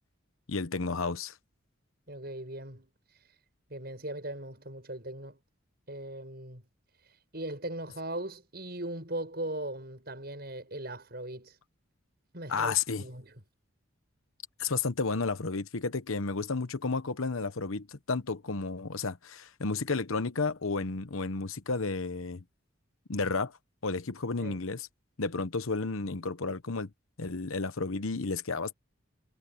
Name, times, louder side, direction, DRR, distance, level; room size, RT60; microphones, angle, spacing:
voice 1, 0.5-1.3 12.5-13.0 14.6-22.4 23.1-23.5 23.8-24.9 25.2-26.9 27.2-28.7, left 4 dB, 80° left, 1.1 m, -32 dB
voice 2, 2.1-2.9 3.7-5.4 5.9-6.7 7.3-11.6 12.3-13.3 24.4-24.6, right 1 dB, 45° right, 7.9 m, -39 dB
head